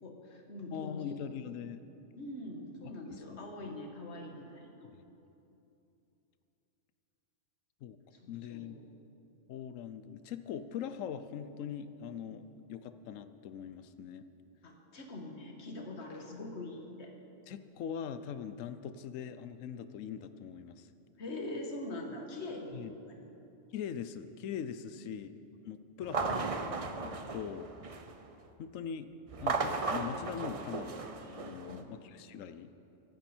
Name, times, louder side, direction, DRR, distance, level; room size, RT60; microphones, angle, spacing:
voice 1, 0.0-1.2 2.2-4.7 8.1-8.8 12.3-12.4 14.6-17.1 21.2-22.9 23.2-23.3 24.9-25.1 27.0-27.4 31.4-31.9, left 2 dB, 55° left, 1 dB, 1.8 m, -43 dB
voice 2, 0.7-1.9 3.1-3.8 7.8-8.0 8.3-8.8 9.5-14.3 17.5-20.9 22.7-22.9 23.7-25.4 25.6-26.6 27.0-27.7 28.6-32.7, left 8 dB, 75° left, 11 dB, 1.0 m, -42 dB
sound 1, 26.0-28.2 29.3-31.8, right 4 dB, 35° right, 0.6 m, -36 dB
24.5 x 9.6 x 4.5 m, 2.9 s
omnidirectional pair, 1.4 m